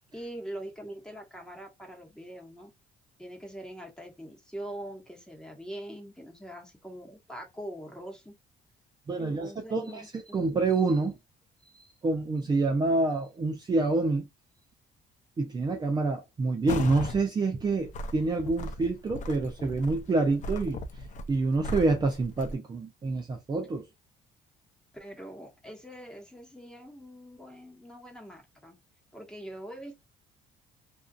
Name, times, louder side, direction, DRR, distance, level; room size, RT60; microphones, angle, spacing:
voice 1, 0.1-2.7 3.2-8.4 9.2-10.5 24.9-28.7 29.1-30.0, right 1 dB, 5° left, 1.1 m, -43 dB
voice 2, 9.1-10.0 10.3-11.2 11.7-14.3 15.4-23.9, right 3 dB, 25° right, 0.5 m, -27 dB
sound 1, 16.7-17.2 17.6-22.6, left 2 dB, 45° left, 0.5 m, -37 dB
2.6 x 2.3 x 2.4 m
cardioid pair, 110°, 17 cm